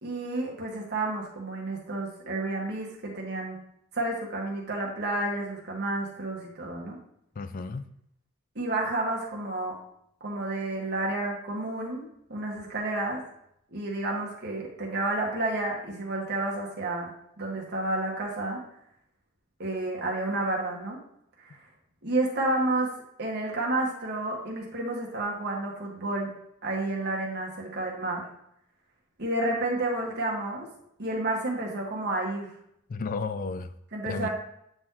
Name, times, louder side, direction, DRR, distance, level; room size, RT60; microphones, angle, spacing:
voice 1, 0.0-3.6 3.9-7.0 8.5-9.8 10.2-12.0 12.3-13.2 13.7-17.1 17.4-18.6 19.6-21.0 21.4-21.6 22.0-22.9 23.2-26.3 26.6-28.2 29.2-30.7 31.0-32.5 33.9-34.3, right 2 dB, 55° right, -2 dB, 1.5 m, -30 dB
voice 2, 7.4-7.9 32.9-33.7 34.1-34.3, left 4 dB, 45° left, 12 dB, 0.4 m, -32 dB
8.7 x 3.8 x 2.9 m, 0.74 s
head